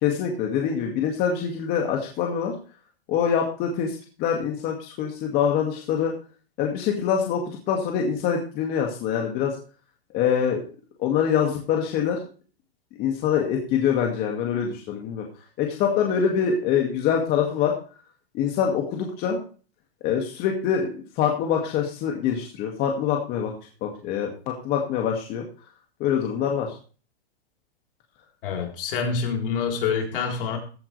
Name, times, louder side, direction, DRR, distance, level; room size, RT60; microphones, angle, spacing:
voice 1, 0.0-2.5 3.1-6.1 6.6-7.4 7.7-9.6 10.1-10.6 11.0-12.2 13.0-15.3 15.6-17.7 18.3-19.4 20.0-23.5 23.8-25.4 26.0-26.7, left 8 dB, 30° left, 1 dB, 2.2 m, -24 dB
voice 2, 28.4-30.6, left 6 dB, 60° left, 2 dB, 4.1 m, -26 dB
15.5 x 9.9 x 3.4 m, 0.38 s
hypercardioid pair, 150°, 31 cm